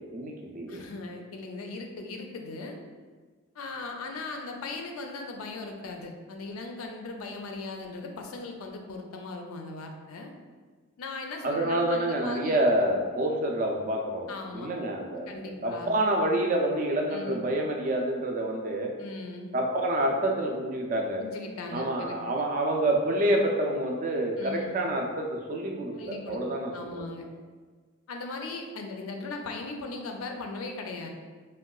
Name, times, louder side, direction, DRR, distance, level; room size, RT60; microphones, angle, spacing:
voice 1, 0.1-0.8 11.4-18.9 19.5-21.2 21.7-27.0, right 1 dB, 40° right, 1 dB, 0.3 m, -28 dB
voice 2, 0.7-2.8 3.5-10.3 11.0-12.6 14.3-14.7 15.3-15.9 17.1-17.4 19.0-19.5 21.2-22.2 24.4-24.7 25.9-26.4 26.7-27.3 28.1-31.1, left 3 dB, 90° left, 3 dB, 0.4 m, -38 dB
3.6 x 2.2 x 2.3 m, 1.5 s
head